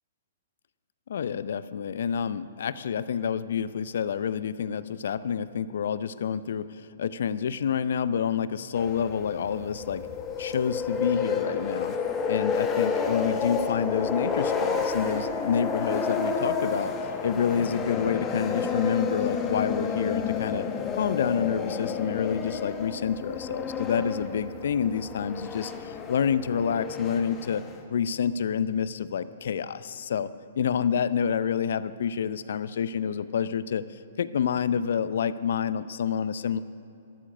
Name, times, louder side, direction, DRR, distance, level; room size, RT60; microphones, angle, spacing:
voice 1, 1.1-10.1 10.4-12.0 12.3-16.9 17.2-20.7 20.9-27.6 27.9-36.6, left 7 dB, 65° left, 15 dB, 0.5 m, -28 dB
sound 1, 8.7-27.8, left 5 dB, 20° left, 1.4 m, -30 dB
13.5 x 13.0 x 6.5 m, 2.8 s
figure-of-eight pair, 120°, 0 cm